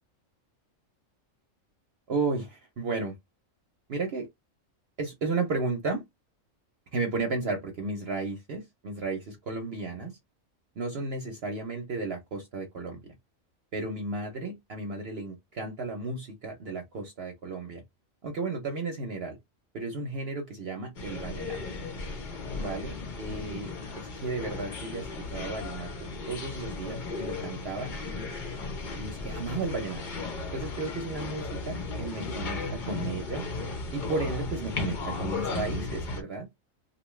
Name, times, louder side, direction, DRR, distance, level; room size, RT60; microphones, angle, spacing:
voice 1, 2.1-3.2 3.9-4.3 5.0-6.0 6.9-10.2 10.8-13.1 13.7-17.8 18.2-19.4 19.7-21.6 22.6-28.3 29.0-30.0 30.5-33.4 33.9-36.5, right 3 dB, 55° right, 0.9 m, -34 dB
sound 1, 21.0-36.2, left 3 dB, 45° left, 0.7 m, -35 dB
2.7 x 2.2 x 3.1 m
omnidirectional pair, 1.4 m